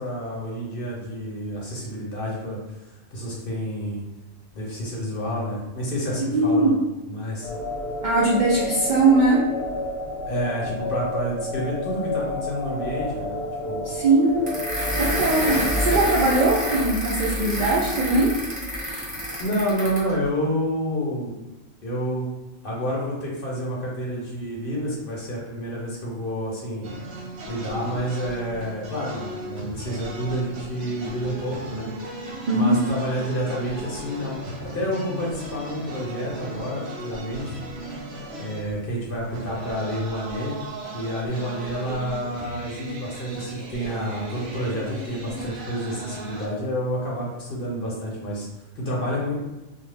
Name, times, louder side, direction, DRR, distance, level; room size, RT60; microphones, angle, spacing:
voice 1, 0.0-2.6 3.1-4.0 4.5-7.5 10.2-13.4 13.7-13.8 19.4-21.4 21.8-22.3 22.6-26.9 27.5-31.9 32.5-37.6 38.4-40.5 40.9-48.5 48.8-49.3, equal, 50° left, -4 dB, 0.8 m, -29 dB
voice 2, 6.3-6.7 8.0-9.4 13.8-14.5 15.0-18.3 32.5-32.7, right 2 dB, 90° right, -5 dB, 0.4 m, -20 dB
sound 1, 7.4-16.9, left 1 dB, 75° left, 1.0 m, -31 dB
sound 2, 14.5-20.1, equal, 10° right, 0.7 m, -27 dB
sound 3, 26.8-46.5, right 1 dB, 60° right, 0.8 m, -36 dB
2.3 x 2.0 x 3.3 m, 1.0 s
omnidirectional pair, 1.4 m